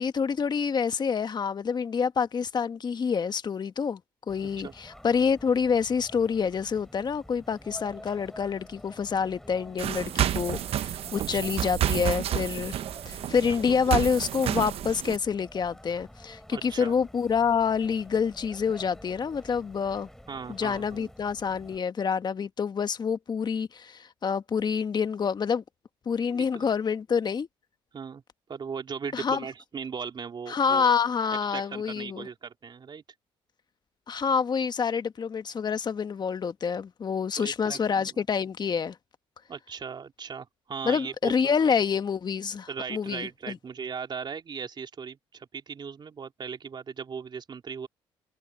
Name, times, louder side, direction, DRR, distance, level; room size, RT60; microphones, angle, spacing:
voice 1, 0.0-4.0 4.3-12.8 13.0-20.1 20.5-25.6 26.0-27.5 29.1-29.4 30.5-32.3 34.1-39.0 40.8-43.6, left 6 dB, 40° left, 1.4 m, -27 dB
sound 1, 4.3-21.8, equal, 5° left, 4.0 m, -49 dB
sound 2, 9.8-15.2, right 11 dB, 65° right, 0.8 m, -30 dB
voice 2, 11.1-11.5 16.5-16.9 20.3-21.1 26.3-26.7 27.9-28.2 28.5-30.9 31.4-33.0 37.4-38.2 39.5-41.8 42.7-47.9, right 6 dB, 45° right, 3.5 m, -38 dB
supercardioid pair, 75°, 11 cm